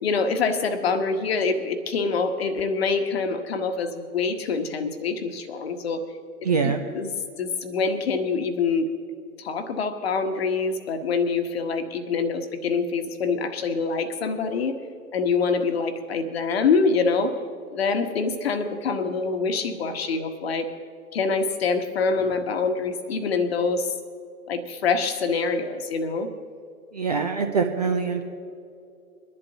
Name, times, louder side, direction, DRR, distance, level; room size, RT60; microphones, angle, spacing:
voice 1, 0.0-6.0 6.6-7.1 7.4-8.9 9.4-14.8 15.1-17.4 17.7-20.7 21.1-23.9 24.5-26.3, left 4 dB, 40° left, 7 dB, 1.2 m, -25 dB
voice 2, 6.4-6.8 26.9-28.2, right 5 dB, 25° right, 5 dB, 0.5 m, -24 dB
23.0 x 11.0 x 2.8 m, 2.5 s
figure-of-eight pair, 135°, 45 cm